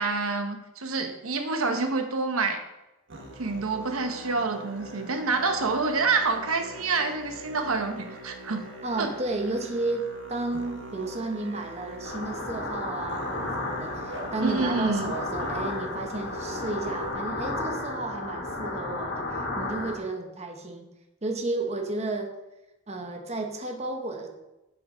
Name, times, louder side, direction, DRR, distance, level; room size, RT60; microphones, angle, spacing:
voice 1, 0.0-2.6 3.4-8.6 9.0-9.1 14.4-15.1, right 4 dB, 85° right, 6 dB, 1.1 m, -27 dB
Musical instrument, 3.1-17.1, right 2 dB, 60° right, 1.6 m, -42 dB
voice 2, 8.8-19.3 19.6-20.8 21.2-22.3 22.9-24.3, right 2 dB, 30° right, 4 dB, 1.0 m, -32 dB
sound 1, 12.0-20.0, left 2 dB, 60° left, 2.2 m, -33 dB
7.8 x 7.2 x 5.0 m, 0.96 s
head